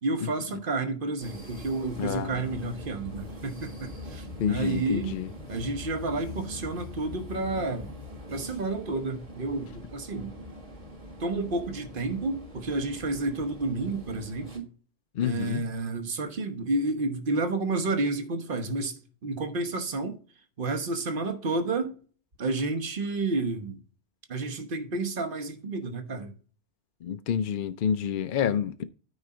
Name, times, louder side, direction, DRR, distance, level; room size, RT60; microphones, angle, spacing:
voice 1, 0.0-5.2 5.5-7.9 8.3-10.3 11.2-14.7 15.2-20.2 20.6-21.9 22.4-23.8 24.3-26.3, right 3 dB, 50° right, 1.2 m, -30 dB
sound 1, 1.2-14.6, left 1 dB, 30° right, 1.7 m, -42 dB
voice 2, 2.0-2.3 4.4-5.3 15.2-15.6 27.0-28.8, left 8 dB, 60° left, 0.6 m, -28 dB
9.5 x 4.0 x 4.9 m
omnidirectional pair, 1.2 m